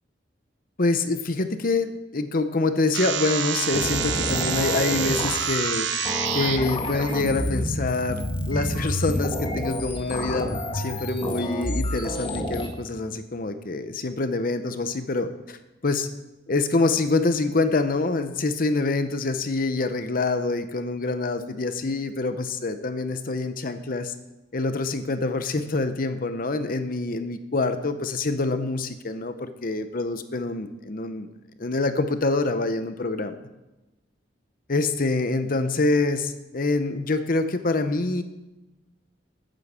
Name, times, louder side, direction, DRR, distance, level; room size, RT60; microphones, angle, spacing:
voice 1, 0.8-5.9 6.3-8.2 8.5-15.6 15.8-16.1 16.5-24.1 24.5-31.3 31.6-33.4 34.7-38.2, left 3 dB, 50° left, 9 dB, 0.8 m, -26 dB
sound 1, 2.9-6.6, right 9 dB, 80° right, 0.9 m, -27 dB
sound 2, 3.7-12.7, left 1 dB, 30° left, 1.6 m, -29 dB
10.0 x 9.3 x 7.4 m, 1.0 s
head